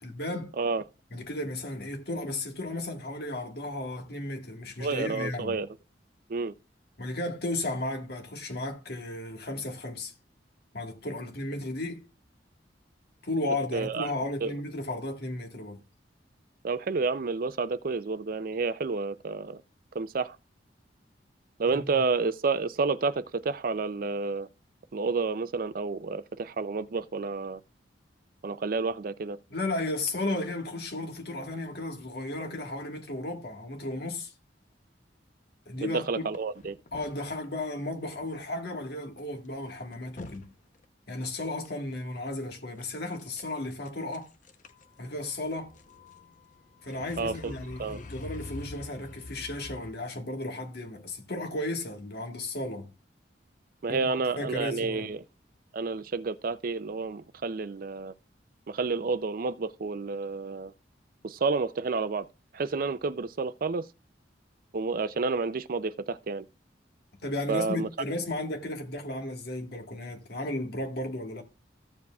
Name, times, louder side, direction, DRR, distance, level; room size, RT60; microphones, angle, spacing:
voice 1, 0.0-0.5 1.1-5.6 7.0-10.1 10.7-12.0 13.2-15.8 21.7-22.0 29.5-34.3 35.7-36.3 36.9-40.5 41.1-44.3 45.0-45.7 46.8-52.9 53.9-55.1 67.2-71.4, left 2 dB, 60° left, 1.6 m, -34 dB
voice 2, 4.8-5.7 6.3-6.5 13.7-14.1 14.4-14.5 16.6-19.6 19.9-20.4 21.6-24.5 24.9-27.6 28.4-29.4 35.8-36.8 47.2-47.5 47.8-48.0 53.8-55.2 55.7-58.1 58.7-60.7 61.2-62.3 62.5-63.9 64.7-66.4 67.5-67.9, right 4 dB, 50° right, 0.5 m, -30 dB
sound 1, 36.3-37.5 38.2-38.4 38.6-38.7 39.2-39.3 39.7-40.5 40.8-40.9 41.2-41.7 42.8-43.6 43.9-49.9, left 3 dB, 45° left, 0.8 m, -46 dB
14.5 x 7.2 x 2.3 m
head